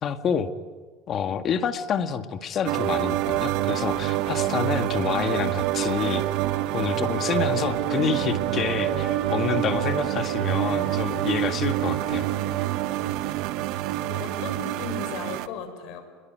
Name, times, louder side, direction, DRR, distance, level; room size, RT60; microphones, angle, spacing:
voice 1, 0.0-0.5 1.1-6.2 6.7-12.3, left 7 dB, 40° left, 8 dB, 1.9 m, -28 dB
sound 1, 2.7-15.5, right 15 dB, 65° right, 1.2 m, -26 dB
Wind instrument woodwind instrument, 5.4-13.5, equal, 20° left, 7.1 m, -43 dB
voice 2, 13.8-16.0, left 6 dB, 65° left, 8 dB, 6.6 m, -36 dB
28.0 x 22.5 x 9.4 m, 1.4 s
supercardioid pair, 130°, 0 cm